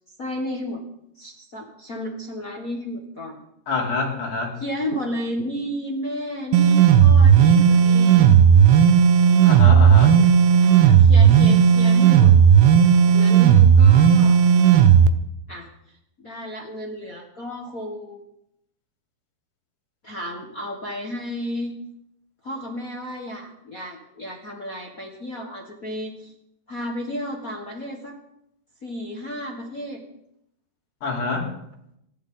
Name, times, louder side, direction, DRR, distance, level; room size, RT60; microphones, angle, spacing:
voice 1, 0.2-0.8 1.1-3.4 4.6-8.4 10.1-10.3 10.6-12.3 13.0-14.4 15.5-15.7 16.2-18.2 20.0-21.8 22.4-26.3 26.7-28.2 28.8-30.0, equal, 60° left, 0 dB, 0.8 m, -32 dB
voice 2, 3.7-4.5 9.4-10.2 31.0-31.5, left 4 dB, 90° left, -2 dB, 5.5 m, -26 dB
sound 1, 6.5-15.1, right 8 dB, 90° right, 2.9 m, -13 dB
28.5 x 11.5 x 3.9 m, 0.78 s
omnidirectional pair, 4.5 m